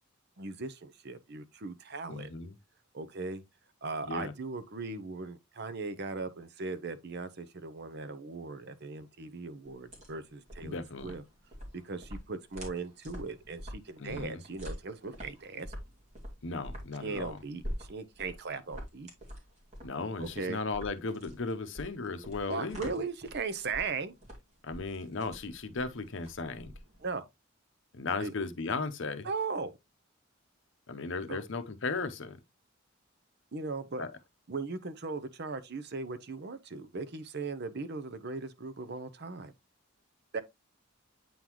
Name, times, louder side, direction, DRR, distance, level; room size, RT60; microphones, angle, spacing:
voice 1, 0.4-2.3 2.9-3.4 3.8-11.2 11.7-15.7 17.0-19.1 20.2-20.6 22.5-24.1 27.0-27.3 28.2-28.3 29.2-29.7 31.3-31.4 33.5-34.0 34.5-39.5 40.3-40.4, right 4 dB, 55° right, 0.7 m, -38 dB
voice 2, 2.1-2.5 4.0-4.3 10.6-11.2 14.0-14.4 16.4-17.4 19.8-23.0 24.6-26.7 27.9-29.3 30.9-32.4 34.0-34.1, left 3 dB, 65° left, 0.8 m, -36 dB
sound 1, 9.7-27.1, equal, 35° right, 2.4 m, -46 dB
8.6 x 3.8 x 3.0 m
head